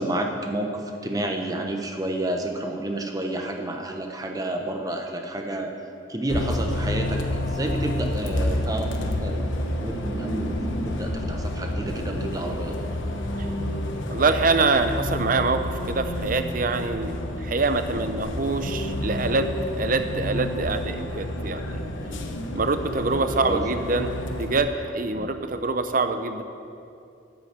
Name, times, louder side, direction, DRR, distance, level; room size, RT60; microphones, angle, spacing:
voice 1, 0.0-5.7 6.1-9.4 9.8-12.8 22.0-22.4 23.1-23.6 25.1-25.3, right 1 dB, 20° right, 3 dB, 1.0 m, -30 dB
Bus, 6.3-24.6, left 1 dB, 80° left, 1.1 m, -29 dB
voice 2, 14.1-17.1 17.4-19.5 19.7-21.8 22.5-24.1 24.4-26.4, right 3 dB, 45° right, 8 dB, 0.6 m, -25 dB
10.5 x 8.0 x 8.0 m, 2.6 s
head